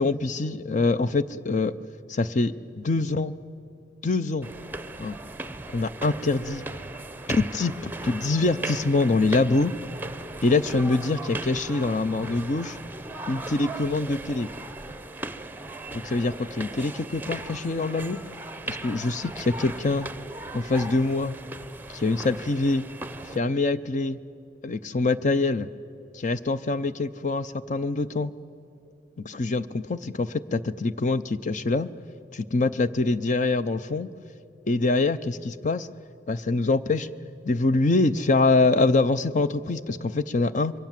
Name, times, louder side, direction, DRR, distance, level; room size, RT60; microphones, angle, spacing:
voice 1, 0.0-1.7 2.1-3.3 4.0-4.5 5.0-5.2 5.7-6.6 7.3-9.7 10.4-12.8 13.3-14.5 15.9-18.2 18.7-20.1 20.5-21.3 21.9-22.9 23.3-24.2 24.6-25.7 26.1-28.3 29.2-31.9 32.3-34.1 34.7-35.9 36.3-37.1 37.4-40.7, left 3 dB, 45° left, 13 dB, 0.7 m, -24 dB
sound 1, 4.4-23.4, right 2 dB, 10° right, 0.7 m, -37 dB
28.0 x 23.0 x 7.5 m, 2.7 s
head